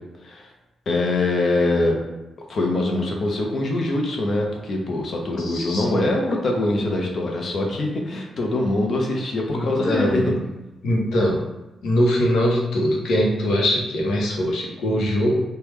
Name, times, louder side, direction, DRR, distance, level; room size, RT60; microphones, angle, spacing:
voice 1, 0.9-2.0 2.5-10.3, left 2 dB, 50° left, 1 dB, 0.6 m, -23 dB
voice 2, 5.4-6.1 9.5-10.4 10.8-11.4 11.8-15.4, equal, 90° left, -2 dB, 0.8 m, -22 dB
3.3 x 2.2 x 3.1 m, 1.0 s
cardioid pair, 120°, 0 cm